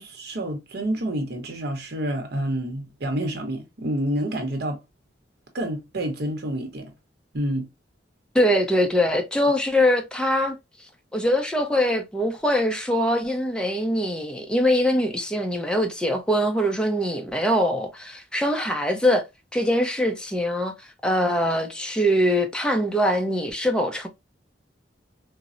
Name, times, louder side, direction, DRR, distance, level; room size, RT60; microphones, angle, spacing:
voice 1, 0.0-4.8 5.5-6.9 7.3-7.7, right 1 dB, 60° right, 0.8 m, -28 dB
voice 2, 8.3-10.6 11.1-19.2 19.5-20.7 21.0-24.1, equal, 5° left, 0.5 m, -23 dB
4.1 x 2.0 x 2.4 m
head